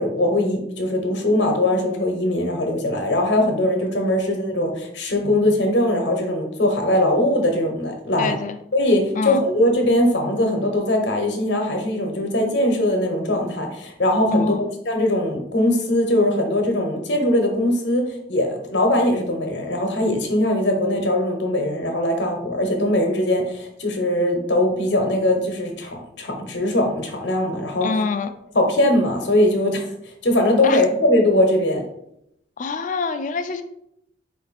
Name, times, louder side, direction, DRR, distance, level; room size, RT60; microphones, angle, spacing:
voice 1, 0.0-8.4 8.7-14.6 14.9-27.9 28.5-29.9 30.2-31.8, left 1 dB, 65° left, 3 dB, 0.8 m, -21 dB
voice 2, 8.2-8.6 9.1-9.5 14.3-14.7 27.8-28.3 30.6-30.8 32.6-33.6, left 4 dB, 45° left, 9 dB, 0.3 m, -25 dB
4.3 x 2.5 x 4.0 m, 0.77 s
head